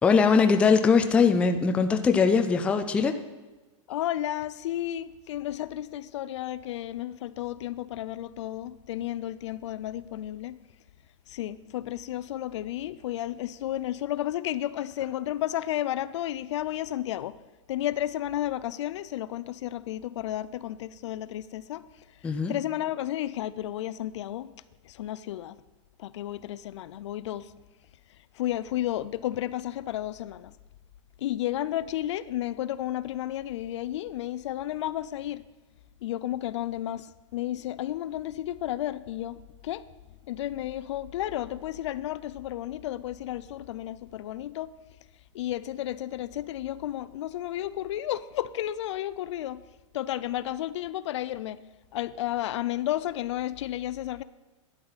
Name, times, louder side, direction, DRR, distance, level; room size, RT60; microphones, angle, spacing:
voice 1, 0.0-3.1 22.2-22.5, left 5 dB, 5° left, 0.4 m, -21 dB
voice 2, 3.9-10.6 11.3-17.4 17.7-21.9 22.2-24.5 24.8-25.6 26.0-27.5 28.4-30.5 31.2-35.4 36.0-39.8 40.3-44.7 45.3-49.6 49.9-51.6 51.9-54.2, left 13 dB, 65° left, 0.5 m, -32 dB
12.0 x 9.5 x 4.1 m
supercardioid pair, 155°, 17 cm